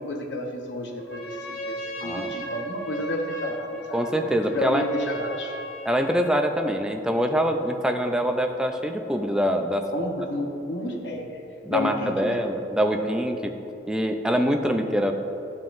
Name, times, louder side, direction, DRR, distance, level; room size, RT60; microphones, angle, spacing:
voice 1, 0.0-4.0 4.5-5.5 9.9-11.4 11.7-12.5, left 1 dB, 70° left, 1 dB, 0.9 m, -31 dB
Trumpet, 1.0-6.5, equal, 50° left, 1.1 m, -36 dB
voice 2, 2.0-2.4 3.9-4.8 5.8-9.9 11.6-13.5 13.9-15.1, equal, 5° right, 4 dB, 0.4 m, -24 dB
12.0 x 5.7 x 2.6 m, 2.8 s
head